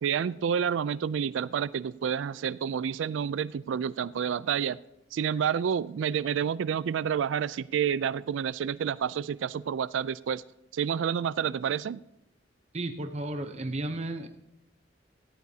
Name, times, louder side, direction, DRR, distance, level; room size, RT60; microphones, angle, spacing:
voice 1, 0.0-4.8 5.1-10.4 10.7-12.0, right 8 dB, 80° right, 18 dB, 0.3 m, -29 dB
voice 2, 12.7-14.3, right 1 dB, 35° right, 7 dB, 0.8 m, -33 dB
17.5 x 14.5 x 2.8 m, 0.86 s
head